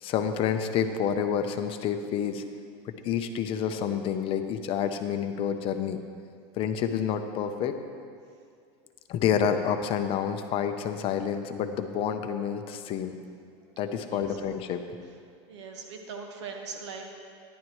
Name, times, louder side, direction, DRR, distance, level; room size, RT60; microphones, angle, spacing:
voice 1, 0.0-2.4 2.8-6.0 6.6-7.8 9.1-13.1 13.8-14.8, left 8 dB, 40° left, 8 dB, 0.7 m, -28 dB
voice 2, 13.9-14.4 15.5-17.0, right 5 dB, 85° right, 2 dB, 1.5 m, -41 dB
13.5 x 11.0 x 3.2 m, 2.2 s
supercardioid pair, 135°, 14 cm